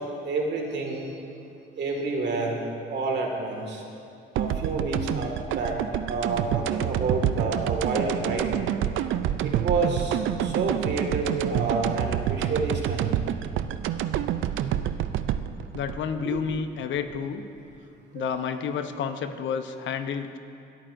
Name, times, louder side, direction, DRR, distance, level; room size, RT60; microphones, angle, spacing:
voice 1, 0.3-1.1 1.8-2.6 2.9-3.8 4.4-5.8 6.1-8.5 9.4-13.1 16.2-16.4 18.1-18.5, right 3 dB, 60° right, 1 dB, 2.0 m, -29 dB
sound 1, 4.4-17.2, right 10 dB, 80° right, 0.4 m, -28 dB
voice 2, 15.7-17.4 18.1-20.4, left 7 dB, 70° left, 8 dB, 0.8 m, -30 dB
26.5 x 9.0 x 2.6 m, 2.5 s
cardioid pair, 90°, 20 cm